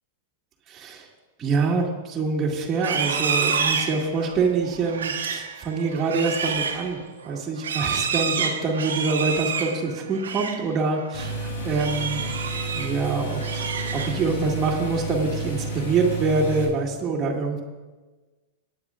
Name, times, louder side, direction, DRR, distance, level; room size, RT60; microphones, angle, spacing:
voice 1, 0.7-1.1 1.4-7.0 7.3-12.2 12.8-13.7 13.9-17.6, right 4 dB, 25° right, -5 dB, 1.9 m, -25 dB
Livestock farm animals working animals, 2.7-10.7 11.0-11.3 11.7-13.0 13.3-14.4, right 6 dB, 80° right, 1.3 m, -28 dB
sound 1, 11.1-16.7, right 2 dB, 75° left, 3.5 m, -31 dB
26.5 x 9.4 x 2.5 m, 1.2 s
hypercardioid pair, 105°, 0 cm